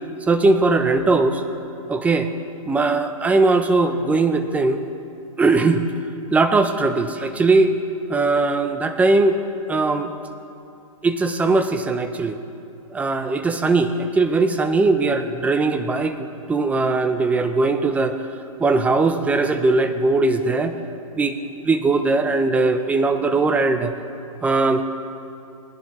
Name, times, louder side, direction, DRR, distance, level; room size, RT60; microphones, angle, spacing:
voice 1, 0.3-1.4 1.9-2.3 2.7-4.8 5.4-5.8 6.3-7.7 8.1-9.4 9.7-10.1 11.0-12.4 12.9-18.2 18.6-20.7 21.2-21.3 21.6-23.9 24.4-24.8, right 3 dB, 10° right, 8 dB, 0.5 m, -19 dB
19.0 x 10.5 x 3.1 m, 2.6 s
hypercardioid pair, 130°, 18 cm